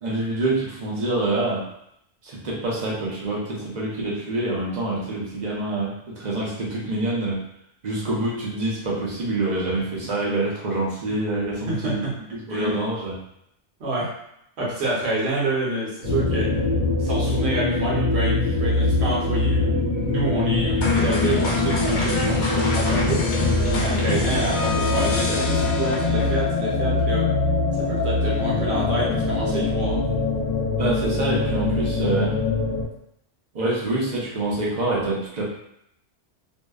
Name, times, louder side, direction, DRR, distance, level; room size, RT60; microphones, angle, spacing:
voice 1, 0.0-1.7 2.2-7.5 7.8-12.1 12.3-13.2 30.8-32.4 33.5-35.4, right 2 dB, 45° right, -5 dB, 0.6 m, -26 dB
voice 2, 11.7-12.1 12.5-12.8 13.8-14.1 14.6-16.6 17.0-23.3 23.8-27.3 27.8-30.0, right 1 dB, 65° right, -5 dB, 1.0 m, -27 dB
sound 1, 16.0-32.8, left 3 dB, 50° left, 1.1 m, -23 dB
sound 2, 20.8-26.5, left 3 dB, 70° left, 0.8 m, -27 dB
2.6 x 2.2 x 2.2 m, 0.76 s
omnidirectional pair, 1.2 m